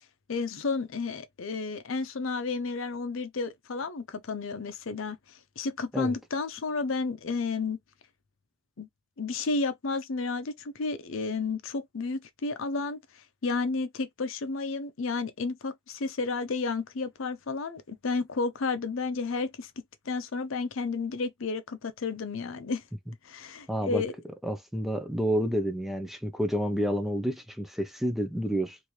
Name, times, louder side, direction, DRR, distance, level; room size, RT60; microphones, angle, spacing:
voice 1, 0.3-5.2 5.6-7.8 8.8-8.9 9.2-13.0 13.4-19.7 20.1-22.8 23.2-24.1, left 4 dB, 70° left, 0.6 m, -32 dB
voice 2, 23.7-24.0 24.4-28.8, equal, ahead, 0.5 m, -29 dB
3.0 x 2.6 x 3.1 m
head